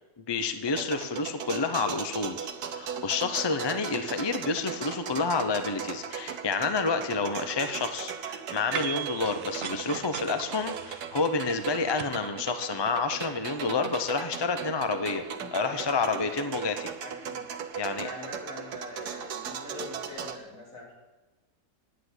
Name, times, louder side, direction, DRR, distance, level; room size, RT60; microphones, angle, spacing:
voice 1, 0.2-15.2 15.5-16.9 17.8-18.1, left 4 dB, 35° left, 9 dB, 0.4 m, -29 dB
sound 1, 0.7-20.4, right 7 dB, 80° right, 1.4 m, -38 dB
sound 2, 8.7-12.1, right 9 dB, 60° right, 0.6 m, -38 dB
voice 2, 15.3-16.3 17.0-17.4 18.0-20.9, left 2 dB, 55° left, -4 dB, 3.9 m, -43 dB
9.8 x 9.4 x 8.0 m, 1.2 s
omnidirectional pair, 1.7 m